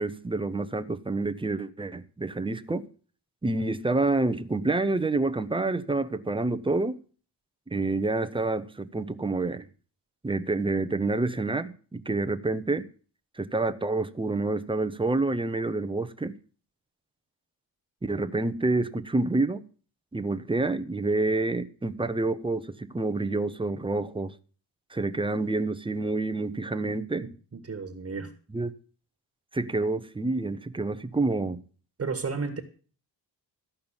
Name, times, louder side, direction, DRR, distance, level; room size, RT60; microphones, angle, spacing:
voice 1, 0.0-2.9 3.4-7.0 7.7-9.7 10.2-12.9 13.4-16.3 18.0-19.6 20.1-24.3 24.9-27.3 28.5-28.7 29.5-31.6, right 2 dB, 15° right, 0.7 m, -28 dB
voice 2, 26.8-28.3 32.0-32.6, right 4 dB, 35° right, 1.5 m, -34 dB
14.0 x 5.6 x 8.8 m
wide cardioid pair, 125°, 41 cm